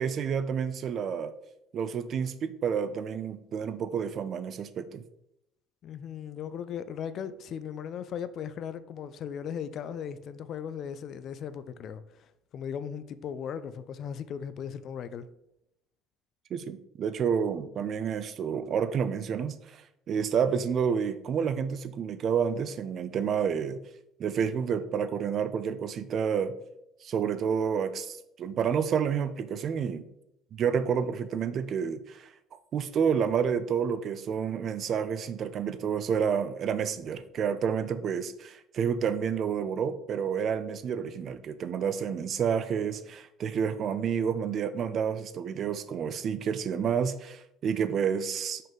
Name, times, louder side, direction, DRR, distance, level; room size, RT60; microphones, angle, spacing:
voice 1, 0.0-1.3 1.7-5.0 16.5-23.8 24.2-26.5 27.0-30.1 30.5-32.3 32.7-48.6, right 7 dB, 45° right, 0.5 m, -29 dB
voice 2, 5.8-15.3, left 8 dB, 50° left, 0.4 m, -37 dB
5.6 x 5.4 x 3.7 m
cardioid pair, 125°, 0 cm